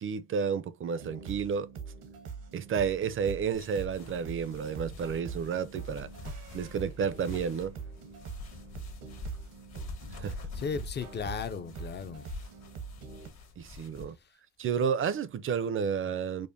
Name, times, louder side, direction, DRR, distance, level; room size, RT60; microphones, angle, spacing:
voice 1, 0.0-1.7 2.5-6.1 6.5-7.7 10.1-10.4 13.6-14.2 14.6-16.5, right 6 dB, 45° right, 0.5 m, -31 dB
sound 1, 1.0-13.3, right 6 dB, 85° right, 1.0 m, -43 dB
sound 2, 3.5-14.0, left 5 dB, 60° left, 1.4 m, -46 dB
voice 2, 10.2-12.3, left 6 dB, 35° left, 0.5 m, -36 dB
5.2 x 2.1 x 2.6 m
cardioid pair, 90°, 30 cm